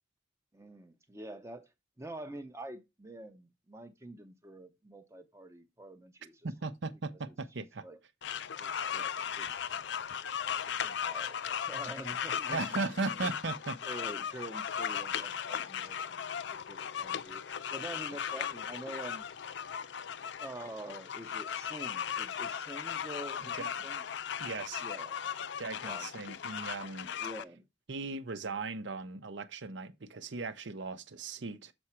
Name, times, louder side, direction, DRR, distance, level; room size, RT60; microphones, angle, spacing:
voice 1, 0.5-1.7 2.0-6.4 7.6-8.0 8.6-9.8 10.8-12.7 13.8-17.4 17.7-19.3 20.4-24.0 24.8-25.2 25.6-26.1 27.2-27.6, right 1 dB, 15° right, 0.6 m, -46 dB
voice 2, 6.4-7.8 12.5-13.8 23.5-23.7 24.4-24.8 25.6-27.1 27.9-31.7, right 3 dB, 70° right, 0.7 m, -37 dB
sound 1, 8.2-27.4, left 8 dB, 65° left, 0.4 m, -37 dB
7.1 x 4.8 x 4.2 m
head